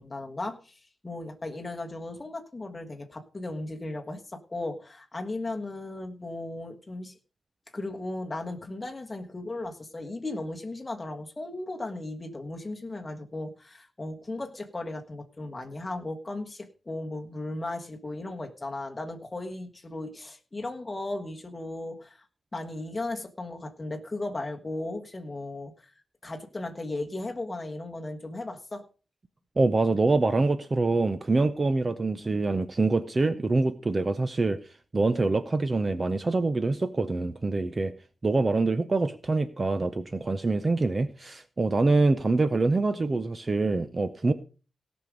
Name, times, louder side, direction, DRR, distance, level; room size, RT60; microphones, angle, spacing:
voice 1, 0.0-7.2 7.7-22.2 22.5-25.9 26.2-28.8, left 2 dB, 20° left, 3 dB, 1.5 m, -36 dB
voice 2, 29.6-34.6 34.9-37.9 38.2-44.3, right 3 dB, 25° right, 11 dB, 0.6 m, -25 dB
17.5 x 6.2 x 5.2 m, 0.36 s
wide cardioid pair, 165°, 0 cm